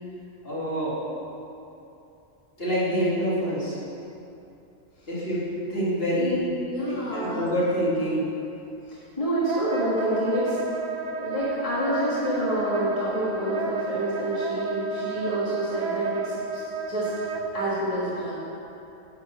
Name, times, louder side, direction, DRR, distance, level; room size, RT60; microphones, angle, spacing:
voice 1, 0.4-1.0 2.6-3.8 5.1-5.4 5.7-6.4 6.9-8.3, equal, 45° left, -9 dB, 2.7 m, -26 dB
voice 2, 6.2-7.4 8.9-10.6 11.2-16.6 16.9-17.1 17.5-18.4, right 1 dB, 25° left, -10 dB, 1.6 m, -28 dB
Wind instrument woodwind instrument, 9.5-17.7, right 4 dB, 60° right, 0.4 m, -31 dB
10.0 x 4.3 x 6.6 m, 2.8 s
omnidirectional pair, 1.4 m